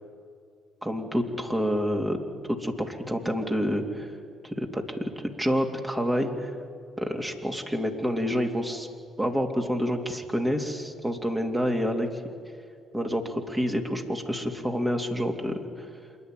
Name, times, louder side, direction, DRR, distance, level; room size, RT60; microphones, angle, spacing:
voice 1, 0.8-2.2 2.5-4.1 4.4-6.5 7.0-8.9 9.2-12.1 12.9-15.9, equal, 15° right, 3 dB, 3.0 m, -28 dB
27.0 x 10.5 x 9.3 m, 2.2 s
hypercardioid pair, 50°, 0 cm